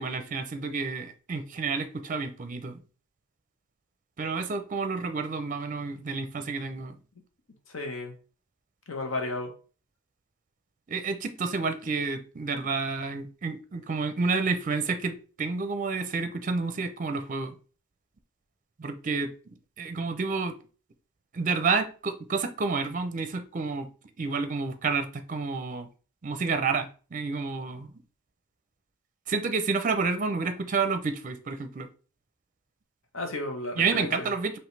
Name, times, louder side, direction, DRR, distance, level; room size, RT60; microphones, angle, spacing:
voice 1, 0.0-2.8 4.2-7.0 10.9-17.6 18.8-19.3 19.8-20.6 21.3-23.9 24.2-25.9 26.2-27.9 29.3-31.9 33.8-34.6, right 4 dB, 40° right, 0.5 m, -29 dB
voice 2, 7.7-8.1 8.9-9.5 33.1-34.3, left 2 dB, 65° left, 1.0 m, -33 dB
5.0 x 3.0 x 3.2 m
head